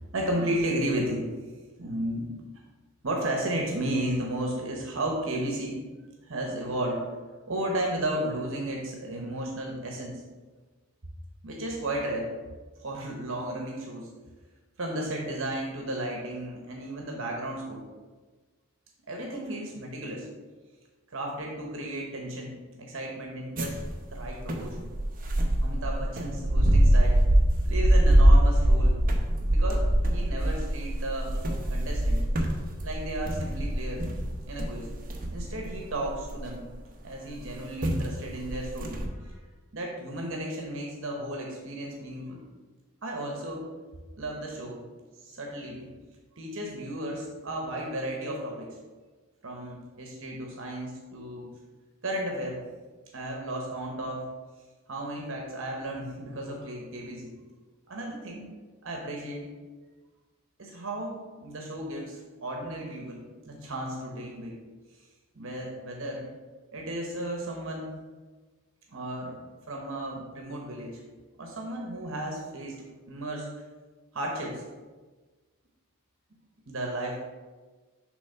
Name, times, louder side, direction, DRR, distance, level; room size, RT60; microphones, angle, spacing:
voice 1, 0.1-1.3 1.8-2.3 3.0-5.8 6.2-7.0 7.5-10.2 11.4-12.3 12.8-14.1 14.8-17.8 19.1-20.3 21.1-23.8 24.1-24.9 25.6-27.2 27.6-29.0 29.2-29.8 30.1-31.4 31.7-32.2 32.8-34.1 34.5-34.9 35.3-36.6 37.0-39.4 39.7-42.4 43.0-43.7 44.2-44.8 45.1-45.9 46.4-48.8 49.4-51.5 52.0-52.6 53.1-54.3 54.9-57.3 57.9-58.5 58.8-59.5 60.6-64.5 65.3-66.3 66.7-68.0 68.9-69.4 69.7-71.0 71.4-73.5 74.1-74.6 76.7-77.3, right 1 dB, 65° right, 0 dB, 1.0 m, -34 dB
sound 1, 23.6-36.7 37.4-37.5 37.8-38.1 38.4-39.1, right 1 dB, 40° right, 0.8 m, -23 dB
7.0 x 3.3 x 5.5 m, 1.3 s
head